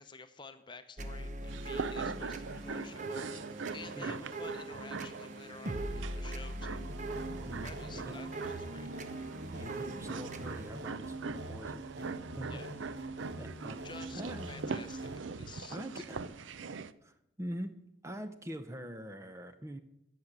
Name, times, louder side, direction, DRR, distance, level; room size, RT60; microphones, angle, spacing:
voice 1, 0.0-6.9 7.6-8.9 12.5-12.7 13.8-14.2 14.5-16.2, left 4 dB, 25° left, 9 dB, 0.8 m, -51 dB
sound 1, 1.0-10.7, right 2 dB, 40° right, 0.9 m, -41 dB
sound 2, 1.5-16.9, right 4 dB, 80° right, 0.6 m, -43 dB
sound 3, 6.9-15.2, right 2 dB, 60° right, 1.1 m, -44 dB
voice 2, 7.4-8.2 9.5-12.9 13.4-14.5 15.7-16.2 17.0-17.7 18.0-19.8, equal, 15° right, 9 dB, 0.7 m, -44 dB
14.5 x 6.6 x 8.8 m, 0.85 s
head